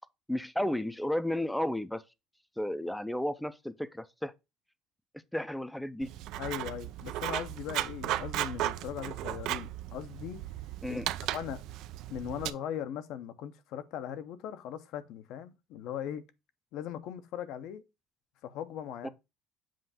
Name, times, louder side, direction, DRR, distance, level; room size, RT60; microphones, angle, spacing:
voice 1, 0.3-2.0 2.6-4.3 5.3-6.1 10.8-11.1 19.0-19.1, left 1 dB, 5° left, 0.5 m, -33 dB
Writing, 6.0-12.5, right 14 dB, 65° right, 0.4 m, -36 dB
voice 2, 6.4-10.4 10.9-11.0 11.3-11.6 12.1-16.3 16.7-17.8 18.4-19.1, left 9 dB, 65° left, 0.8 m, -39 dB
7.6 x 2.6 x 5.7 m
cardioid pair, 130°, 0 cm